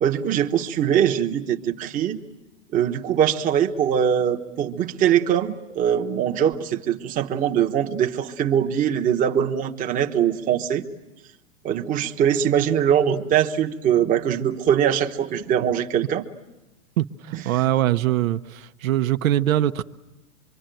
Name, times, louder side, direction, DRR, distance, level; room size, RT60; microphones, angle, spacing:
voice 1, 0.0-2.2 2.7-10.8 11.6-16.3 17.3-17.6, right 9 dB, 20° right, 1.0 m, -22 dB
voice 2, 17.0-19.8, right 13 dB, 80° right, 0.9 m, -22 dB
25.5 x 23.5 x 9.0 m
supercardioid pair, 150°, 40 cm